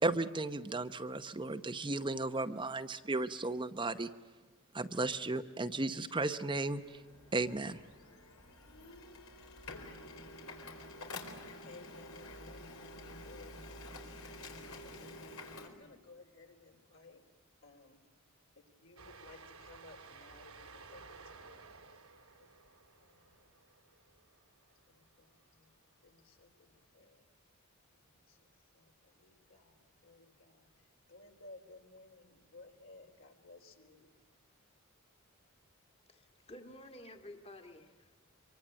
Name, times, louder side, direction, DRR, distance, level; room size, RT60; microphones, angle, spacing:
voice 1, 0.0-4.1 4.7-7.0 7.3-7.8, right 2 dB, 20° right, 8 dB, 0.8 m, -35 dB
Printer, 6.6-15.7, left 2 dB, 80° left, 4.2 m, -49 dB
voice 2, 11.6-14.2 14.6-15.3 15.6-17.2 17.6-18.0 18.6-21.6 22.4-22.5 23.0-23.5 24.9-25.7 26.0-27.2 28.0-30.7 31.1-34.1, left 3 dB, 65° left, 3 dB, 4.0 m, -58 dB
Train, 19.0-25.1, right 4 dB, 85° right, 2.7 m, -55 dB
voice 3, 36.1-38.3, left 1 dB, 30° left, 5 dB, 2.0 m, -52 dB
25.5 x 23.5 x 8.7 m, 1.3 s
head